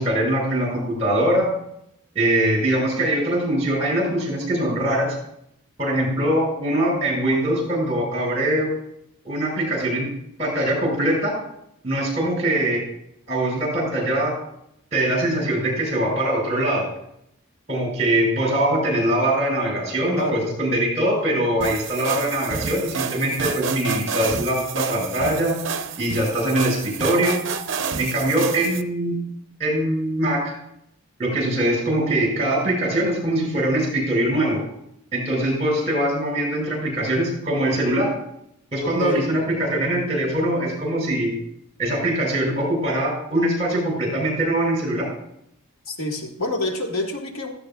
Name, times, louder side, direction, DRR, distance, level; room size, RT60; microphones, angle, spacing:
voice 1, 0.0-1.5 2.1-5.1 5.8-8.7 9.2-10.1 10.4-11.4 11.8-12.8 13.3-14.4 14.9-16.9 17.7-25.6 26.0-27.4 28.0-29.2 29.6-30.5 31.2-34.6 35.1-38.1 38.7-41.3 41.8-45.1, right 1 dB, 30° right, -2 dB, 6.1 m, -22 dB
voice 2, 20.2-20.6 21.3-21.4 38.8-39.5 45.9-47.5, left 1 dB, 80° left, 1 dB, 1.8 m, -27 dB
sound 1, 21.6-28.8, right 5 dB, 55° right, 0.7 m, -29 dB
16.0 x 14.5 x 2.4 m, 0.76 s
head